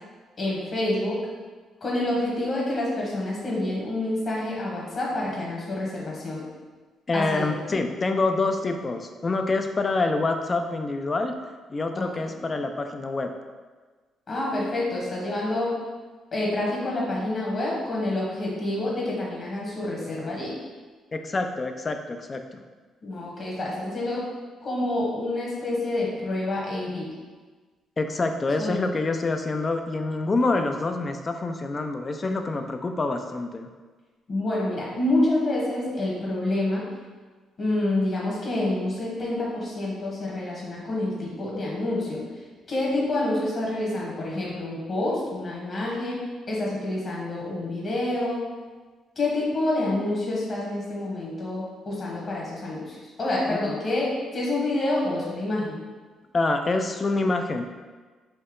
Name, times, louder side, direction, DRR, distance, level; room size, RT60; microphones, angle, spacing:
voice 1, 0.4-1.2 1.8-6.4 7.1-7.8 12.0-12.4 14.3-15.8 16.3-20.5 23.0-24.2 24.6-27.1 28.6-28.8 34.3-36.8 37.6-42.2 42.7-46.2 46.5-48.5 49.1-55.8, left 1 dB, 50° left, -4 dB, 1.4 m, -28 dB
voice 2, 7.1-11.3 11.7-13.3 21.1-22.6 28.0-33.7 53.5-53.6 56.3-57.6, left 3 dB, 30° left, 6 dB, 0.4 m, -26 dB
4.3 x 2.8 x 3.8 m, 1.4 s
cardioid pair, 90°, 0 cm